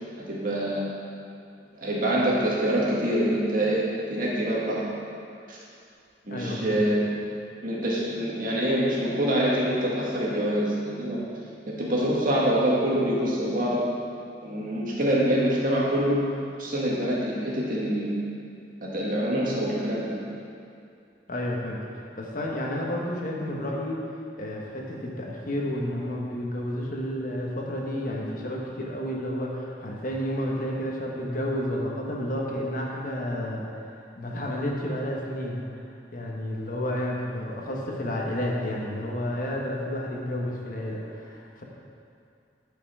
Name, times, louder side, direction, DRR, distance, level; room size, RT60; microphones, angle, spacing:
voice 1, 0.3-0.9 1.8-4.8 5.5-5.6 6.3-7.0 7.6-11.2 11.7-13.8 14.4-16.2 16.6-18.1 18.8-20.2, right 1 dB, 50° right, -5 dB, 1.8 m, -25 dB
voice 2, 6.3-6.8 21.3-24.0 24.4-33.6 34.2-35.6 36.1-41.6, left 1 dB, 50° left, -2 dB, 1.2 m, -31 dB
10.5 x 5.4 x 4.8 m, 2.5 s
head